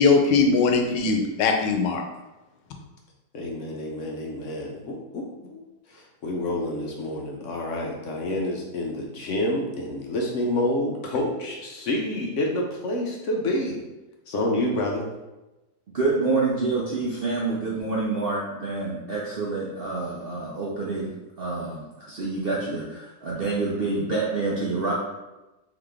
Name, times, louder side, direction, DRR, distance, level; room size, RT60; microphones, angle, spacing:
voice 1, 0.0-2.0, left 4 dB, 90° left, 3 dB, 1.3 m, -20 dB
voice 2, 3.3-13.8 14.3-15.1, left 1 dB, 65° left, -1 dB, 0.7 m, -28 dB
voice 3, 15.9-21.1 21.4-24.9, right 3 dB, 70° right, -5 dB, 0.5 m, -27 dB
3.9 x 3.1 x 3.4 m, 1.0 s
omnidirectional pair, 1.8 m